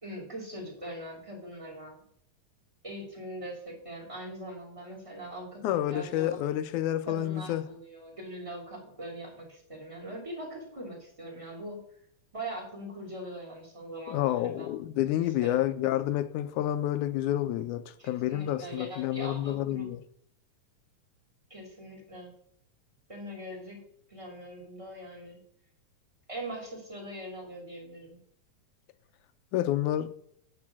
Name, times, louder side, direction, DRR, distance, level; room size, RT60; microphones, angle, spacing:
voice 1, 0.0-2.0 2.8-6.4 7.0-11.8 12.3-14.7 14.9-15.0 15.4-15.6 18.0-19.9 21.5-22.3 23.1-23.8 24.1-25.4 26.3-28.2, right 1 dB, 10° right, 2.9 m, -41 dB
voice 2, 5.6-7.7 14.1-20.0 29.5-30.1, left 13 dB, 80° left, 2.1 m, -29 dB
9.5 x 5.0 x 7.4 m
omnidirectional pair, 3.5 m